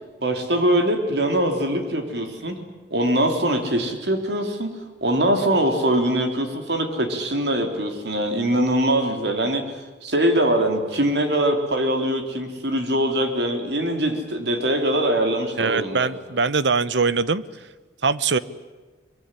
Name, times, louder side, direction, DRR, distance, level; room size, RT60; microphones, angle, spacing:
voice 1, 0.2-2.5 2.9-4.7 5.0-9.6 10.0-16.1, right 1 dB, 70° right, 5 dB, 3.7 m, -22 dB
voice 2, 15.6-17.4 18.0-18.4, right 4 dB, 85° right, 16 dB, 1.0 m, -22 dB
24.0 x 22.5 x 10.0 m, 1.3 s
head